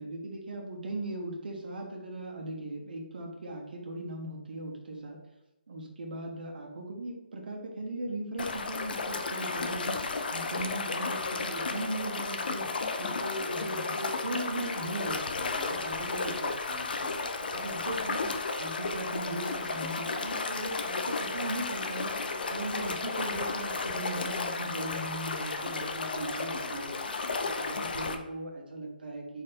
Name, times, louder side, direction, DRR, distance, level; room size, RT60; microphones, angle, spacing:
voice 1, 0.0-5.2 5.7-10.0 10.3-12.7 13.0-17.2 17.5-22.2 22.5-27.0 27.4-29.4, right 2 dB, 60° right, 1 dB, 1.1 m, -38 dB
sound 1, 8.4-28.2, left 4 dB, 65° left, 0.6 m, -33 dB
4.3 x 3.1 x 3.7 m, 0.94 s
hypercardioid pair, 160°, 6 cm